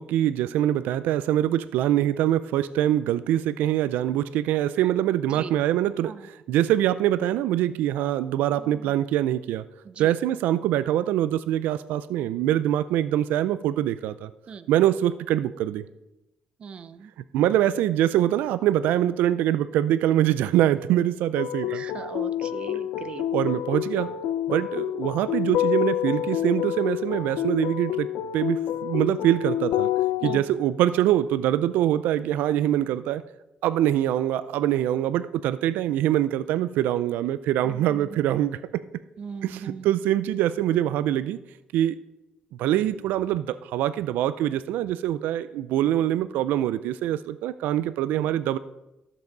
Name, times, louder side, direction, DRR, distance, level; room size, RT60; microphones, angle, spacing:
voice 1, 0.0-9.6 10.0-14.3 14.7-15.8 17.3-21.8 23.3-24.1 24.5-28.1 28.3-29.9 30.2-33.2 33.6-38.6 39.4-41.4 41.7-42.0 42.6-48.6, right 12 dB, 90° right, 14 dB, 0.4 m, -24 dB
voice 2, 16.6-17.1 21.7-23.2 30.2-30.4 37.7-38.2 39.2-39.9, right 6 dB, 35° right, 11 dB, 0.6 m, -39 dB
sound 1, 21.4-30.4, left 11 dB, 90° left, 0.5 m, -28 dB
14.0 x 7.4 x 3.9 m, 0.96 s
cardioid pair, 150°, 3 cm